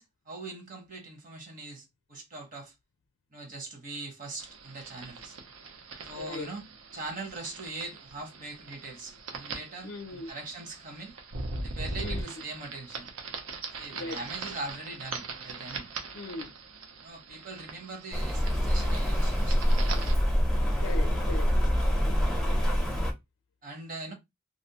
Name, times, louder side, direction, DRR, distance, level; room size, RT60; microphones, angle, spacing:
voice 1, 0.0-2.7 3.3-5.4 6.0-6.6 6.9-11.1 11.6-13.1 13.8-15.9 17.0-19.9 23.6-24.1, right 2 dB, 40° right, 0.9 m, -41 dB
sound 1, 4.4-20.1, right 3 dB, 85° right, 0.6 m, -41 dB
voice 2, 6.2-6.5 9.8-10.3 12.0-12.3 13.9-14.2 16.1-16.5 20.8-21.5, left 3 dB, 80° left, 0.4 m, -38 dB
Rain, 18.1-23.1, equal, 5° left, 0.5 m, -25 dB
2.5 x 2.0 x 2.7 m
head